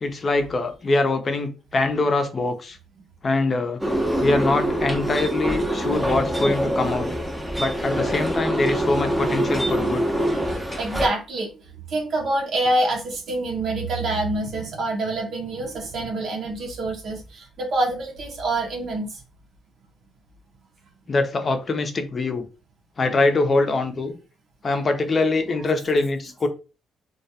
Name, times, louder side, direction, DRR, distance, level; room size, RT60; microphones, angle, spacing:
voice 1, 0.0-2.8 3.2-3.8 4.2-7.1 7.6-10.1 21.1-22.5 23.0-24.2 24.6-26.5, left 2 dB, 40° left, 7 dB, 0.5 m, -23 dB
sound 1, 3.8-11.1, right 1 dB, 10° right, 0.6 m, -24 dB
voice 2, 10.5-11.5 11.9-19.1, right 2 dB, 65° right, 0 dB, 0.7 m, -26 dB
2.3 x 2.2 x 2.7 m, 0.31 s
cardioid pair, 90°, 0 cm